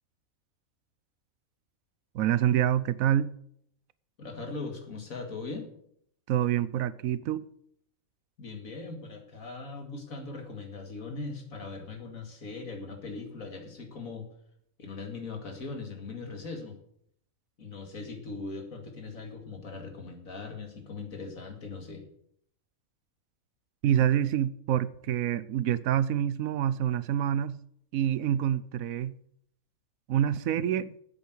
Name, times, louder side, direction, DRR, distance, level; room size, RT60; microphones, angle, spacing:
voice 1, 2.1-3.3 6.3-7.4 23.8-27.6 27.9-29.1 30.1-30.9, right 10 dB, 75° right, 1.0 m, -26 dB
voice 2, 4.2-5.7 8.4-14.3 14.8-16.8 17.6-22.0, left 3 dB, 70° left, 2.5 m, -40 dB
8.8 x 8.1 x 7.8 m
omnidirectional pair, 1.5 m